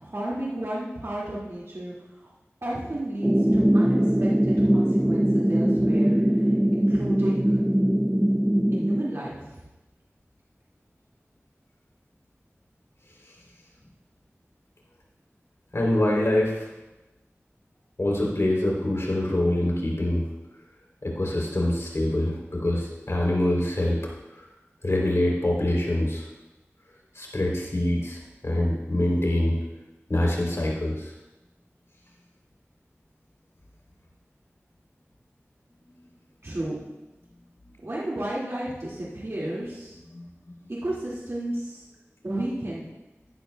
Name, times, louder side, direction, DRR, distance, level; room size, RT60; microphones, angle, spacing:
voice 1, 0.0-1.9 2.2-2.3 2.6-6.2 6.7-7.6 8.7-9.6 36.4-36.8 37.8-40.0 40.8-41.8 42.2-42.9, right 1 dB, 65° right, -7 dB, 2.1 m, -32 dB
sound 1, 3.2-9.0, right 1 dB, 15° right, 0.4 m, -21 dB
voice 2, 15.7-16.6 18.0-20.3 21.0-24.0 24.3-24.4 24.8-26.2 27.1-29.6 30.1-31.1 36.0-36.1 40.1-40.2 40.6-40.7, left 1 dB, 70° left, -2 dB, 3.2 m, -25 dB
15.5 x 11.5 x 2.3 m, 1.1 s
wide cardioid pair, 50°, 5 cm